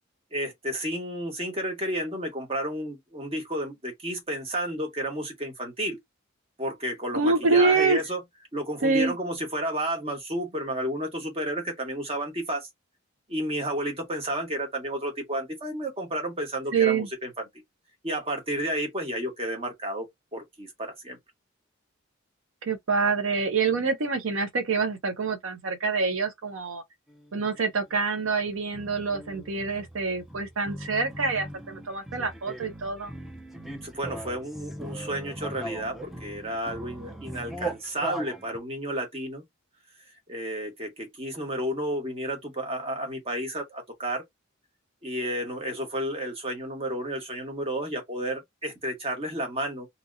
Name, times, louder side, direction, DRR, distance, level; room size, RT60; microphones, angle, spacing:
voice 1, 0.3-6.0 6.6-8.2 8.5-12.7 13.3-17.3 18.0-20.1 20.3-21.2 33.8-39.4 40.3-44.2 45.0-49.9, right 1 dB, 30° right, 1.1 m, -31 dB
voice 2, 7.1-8.0 8.8-9.2 16.7-17.1 22.7-26.8 27.3-33.1, right 4 dB, 80° right, 0.6 m, -26 dB
sound 1, 27.1-27.5 27.9-38.6, right 1 dB, ahead, 0.4 m, -39 dB
2.8 x 2.8 x 2.5 m
head